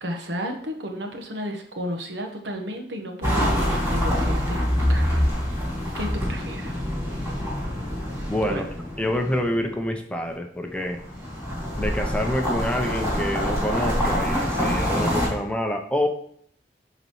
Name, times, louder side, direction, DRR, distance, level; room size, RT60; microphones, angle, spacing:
voice 1, 0.0-5.1 6.0-6.8 8.5-8.7, equal, 85° right, 4 dB, 1.1 m, -32 dB
sound 1, 3.2-9.7 10.8-15.3, equal, 15° right, 2.5 m, -25 dB
voice 2, 8.3-8.6 9.0-11.0 11.8-16.1, left 1 dB, 5° left, 4 dB, 0.5 m, -27 dB
11.0 x 4.0 x 3.0 m, 0.64 s
head